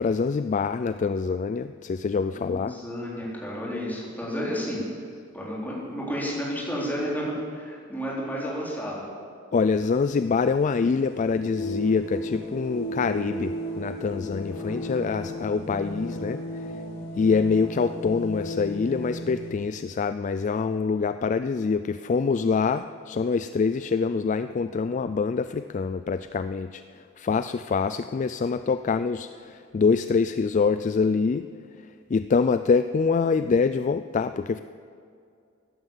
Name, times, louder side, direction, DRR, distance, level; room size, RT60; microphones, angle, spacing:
voice 1, 0.0-2.7 9.5-16.4 17.2-26.8 27.2-31.5 32.1-34.6, left 5 dB, 35° left, 11 dB, 0.3 m, -25 dB
voice 2, 2.3-4.8 5.3-7.2 7.5-9.1 14.5-15.5, equal, 10° left, -5 dB, 4.0 m, -32 dB
sound 1, 9.6-19.5, equal, 55° left, 4.5 m, -35 dB
15.5 x 11.0 x 7.3 m, 2.4 s
head